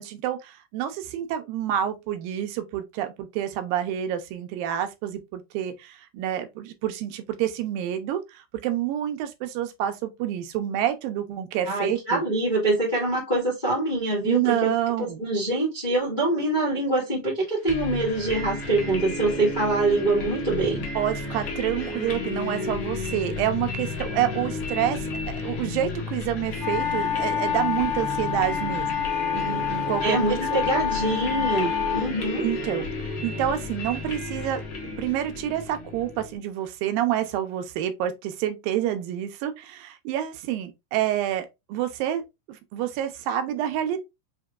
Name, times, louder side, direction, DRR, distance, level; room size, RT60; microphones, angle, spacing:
voice 1, 0.0-12.2 14.3-15.2 21.0-30.2 30.5-30.7 32.4-42.2 42.5-44.0, right 11 dB, 85° right, 2.5 m, -28 dB
voice 2, 11.7-20.8 30.0-32.4, right 2 dB, 25° left, 1.1 m, -25 dB
sound 1, 17.7-36.4, left 2 dB, 80° left, 1.0 m, -32 dB
sound 2, 26.6-32.1, left 9 dB, 55° left, 1.9 m, -28 dB
6.2 x 2.9 x 2.3 m
omnidirectional pair, 4.0 m